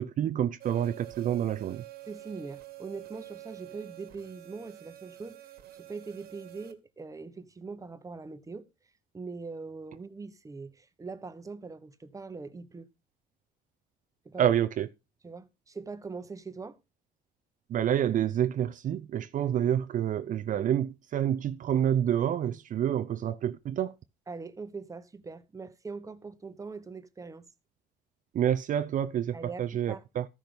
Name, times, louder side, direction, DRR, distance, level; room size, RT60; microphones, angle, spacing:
voice 1, 0.0-1.8 14.4-14.9 17.7-23.9 28.3-30.3, right 10 dB, 50° right, 0.6 m, -28 dB
sound 1, 0.6-6.7, right 16 dB, 70° right, 1.8 m, -47 dB
voice 2, 2.1-8.7 9.1-12.9 14.2-14.5 15.2-16.8 24.3-27.5 29.3-30.0, right 4 dB, 20° right, 1.2 m, -42 dB
13.5 x 6.0 x 5.2 m
cardioid pair, 110°, 17 cm